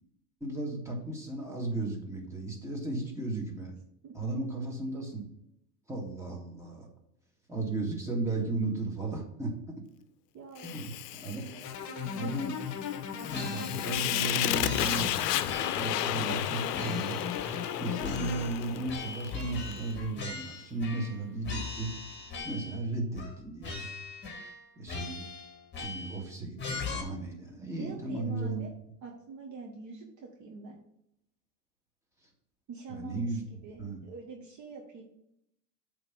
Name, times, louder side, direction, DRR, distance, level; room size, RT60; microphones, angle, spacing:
voice 1, 0.4-3.7 4.1-5.2 5.9-6.9 7.5-9.8 10.6-11.5 12.2-12.5 13.3-15.2 15.6-17.2 17.8-21.9 22.4-23.8 24.8-25.2 25.8-28.6 32.9-33.4 33.8-34.0, right 2 dB, 5° right, -2 dB, 2.1 m, -35 dB
voice 2, 10.3-10.7 11.3-12.1 27.8-28.7 29.0-30.8 32.7-35.0, right 4 dB, 35° right, 1 dB, 1.3 m, -45 dB
Fire, 10.6-19.8, left 13 dB, 80° left, 0.6 m, -33 dB
sound 1, 11.6-18.5, left 7 dB, 40° left, 1.0 m, -38 dB
sound 2, 13.3-14.3 14.6-16.0 16.3-17.7 18.0-21.2 21.4-22.8 23.2-23.4 23.6-24.6 24.9-26.2 26.6-27.0, left 4 dB, 25° left, 2.1 m, -40 dB
8.0 x 3.5 x 6.0 m, 0.77 s
hypercardioid pair, 100°, 47 cm